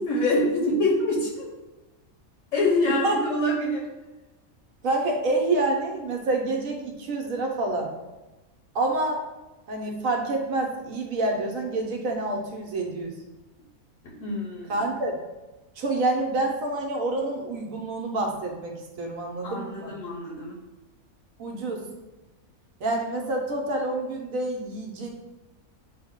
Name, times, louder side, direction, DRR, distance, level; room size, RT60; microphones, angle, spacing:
voice 1, 0.0-1.5 2.5-3.9 14.0-14.8 19.4-20.6, left 1 dB, 65° left, -3 dB, 1.0 m, -25 dB
voice 2, 4.8-7.9 8.7-9.2 9.7-13.1 14.7-15.1 15.8-19.9 21.4-21.9 22.8-25.1, right 2 dB, 70° right, 1 dB, 1.1 m, -27 dB
6.2 x 2.1 x 3.5 m, 1.1 s
omnidirectional pair, 1.5 m